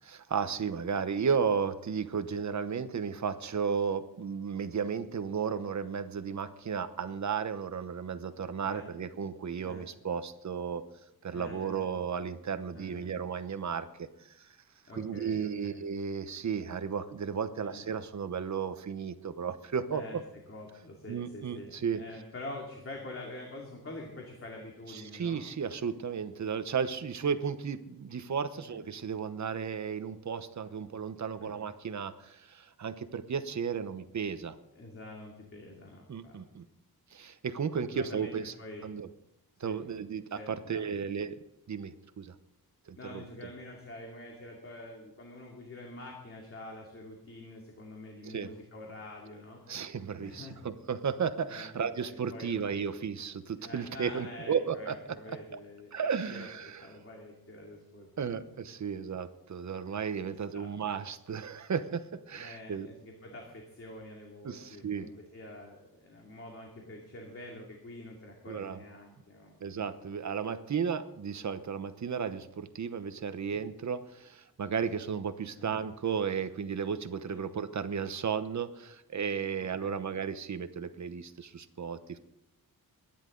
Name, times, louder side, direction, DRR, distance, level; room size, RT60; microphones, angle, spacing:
voice 1, 0.0-10.8 11.2-14.6 14.9-20.0 21.1-22.0 24.9-34.6 36.1-36.7 37.1-38.5 38.8-39.1 39.6-41.4 41.7-42.3 42.9-43.2 48.2-48.5 49.7-54.9 55.5-55.6 55.9-56.9 58.2-62.9 64.4-65.1 68.5-68.8 69.6-82.2, right 6 dB, 50° right, 11 dB, 1.0 m, -34 dB
voice 2, 11.3-11.9 12.7-13.1 14.9-15.8 17.6-17.8 19.9-20.2 20.5-25.4 28.6-28.8 31.4-31.6 34.7-36.4 37.7-38.9 39.6-39.8 40.3-40.9 43.0-49.6 50.2-50.6 51.5-52.8 53.6-58.4 60.2-60.7 62.3-69.6 75.6-75.8 77.3-77.5 79.6-80.0, left 1 dB, 35° left, -1 dB, 2.5 m, -46 dB
23.0 x 10.5 x 3.9 m, 0.88 s
wide cardioid pair, 150°, 37 cm